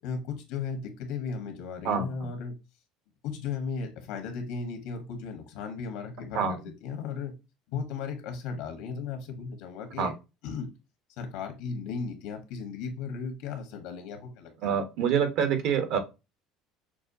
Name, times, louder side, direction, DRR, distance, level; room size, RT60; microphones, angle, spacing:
voice 1, 0.0-2.5 3.2-7.3 7.7-10.1 10.4-10.7 11.2-14.8, left 5 dB, 75° left, 6 dB, 1.1 m, -36 dB
voice 2, 1.8-2.2 6.3-6.6 10.0-10.1 14.6-16.0, right 7 dB, 65° right, 7 dB, 1.0 m, -26 dB
6.0 x 2.3 x 2.6 m, 0.27 s
cardioid pair, 130°, 0 cm